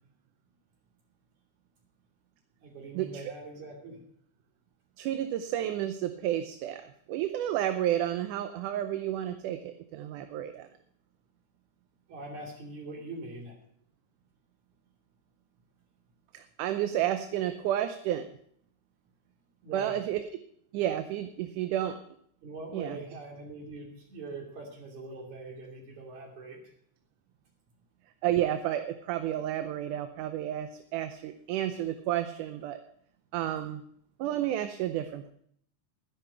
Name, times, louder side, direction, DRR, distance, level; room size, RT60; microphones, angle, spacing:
voice 1, 2.6-4.0 12.1-13.6 19.6-20.0 22.4-26.6, right 2 dB, 65° right, 1 dB, 4.2 m, -42 dB
voice 2, 5.0-10.7 16.3-18.3 19.7-20.2 20.7-22.0 22.7-23.0 28.2-32.8 33.3-33.8 34.2-35.3, right 12 dB, 80° right, 9 dB, 2.2 m, -31 dB
12.0 x 11.0 x 5.7 m, 0.65 s
omnidirectional pair, 3.7 m